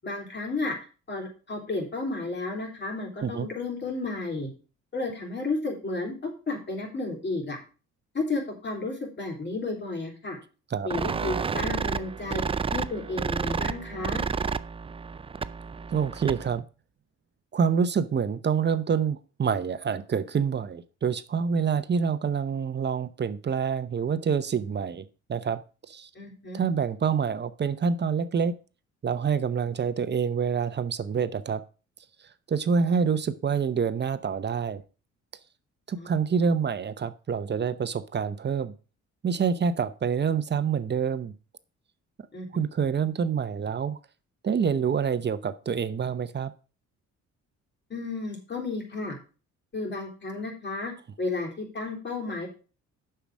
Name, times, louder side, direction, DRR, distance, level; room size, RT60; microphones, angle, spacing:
voice 1, 0.0-0.8 1.1-4.5 4.9-7.6 8.1-10.4 10.8-12.4 12.7-14.2 26.2-26.6 36.0-36.1 42.3-42.5 47.9-49.2 49.7-50.9 51.2-52.5, left 3 dB, 35° left, 1 dB, 3.5 m, -32 dB
sound 1, 10.9-16.6, right 5 dB, 20° right, 0.4 m, -31 dB
voice 2, 15.9-16.6 17.5-25.6 25.9-26.1 26.5-28.5 29.0-31.6 32.5-34.8 35.9-38.7 39.2-41.3 42.5-44.0 44.4-46.5, right 6 dB, 35° right, 13 dB, 0.8 m, -27 dB
7.0 x 5.8 x 6.3 m, 0.35 s
cardioid pair, 90°, 30 cm